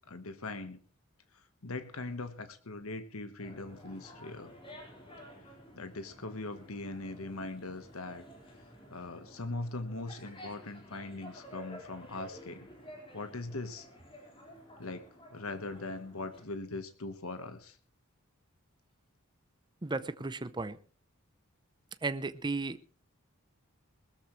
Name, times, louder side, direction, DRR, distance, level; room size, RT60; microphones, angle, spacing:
voice 1, 0.1-0.8 1.6-4.5 5.8-8.2 8.9-12.7 13.1-13.9 14.8-15.0 15.3-17.8, left 2 dB, 90° left, 9 dB, 1.3 m, -40 dB
sound 1, 3.4-16.4, equal, 25° left, 4.4 m, -52 dB
voice 2, 19.8-20.8 22.0-22.8, right 3 dB, 20° right, 13 dB, 0.7 m, -34 dB
20.5 x 13.5 x 3.2 m, 0.39 s
head